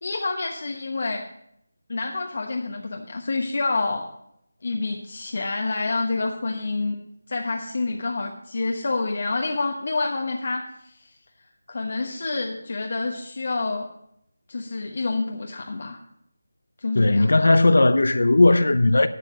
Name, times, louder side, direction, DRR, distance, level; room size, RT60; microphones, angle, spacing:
voice 1, 0.0-1.3 1.9-4.1 4.6-7.0 7.3-10.7 11.7-13.9 14.5-16.0 16.8-17.4, left 3 dB, 45° left, 1.1 m, -28 dB
voice 2, 16.9-19.1, left 2 dB, 70° left, 0.7 m, -17 dB
11.5 x 7.5 x 6.1 m
figure-of-eight pair, 175°, 0 cm